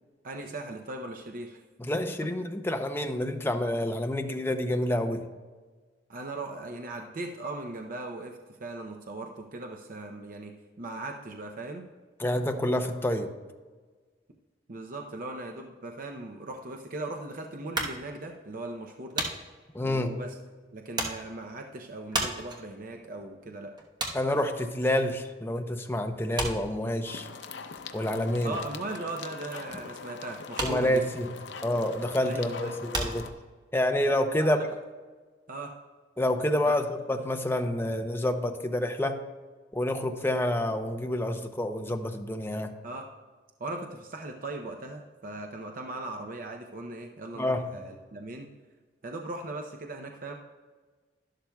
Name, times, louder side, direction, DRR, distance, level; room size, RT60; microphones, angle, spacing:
voice 1, 0.2-1.6 6.1-11.9 14.7-19.3 19.8-20.4 20.7-23.7 28.4-31.0 32.3-32.8 34.4-34.7 35.5-35.7 36.6-36.8 42.8-43.1 43.6-48.5 49.0-50.3, right 2 dB, 50° right, 3 dB, 0.7 m, -38 dB
voice 2, 1.8-5.2 12.2-13.3 19.7-20.2 24.1-27.3 27.9-28.6 30.6-31.3 31.6-33.3 33.7-34.6 36.2-39.2 39.7-42.7 47.4-47.7, left 1 dB, 15° left, 6 dB, 0.6 m, -28 dB
sound 1, 17.7-25.6 25.9-33.9, right 2 dB, 25° right, 1.1 m, -36 dB
sound 2, 27.1-33.3, left 5 dB, 85° left, 0.6 m, -42 dB
12.0 x 11.5 x 2.3 m, 1.4 s
head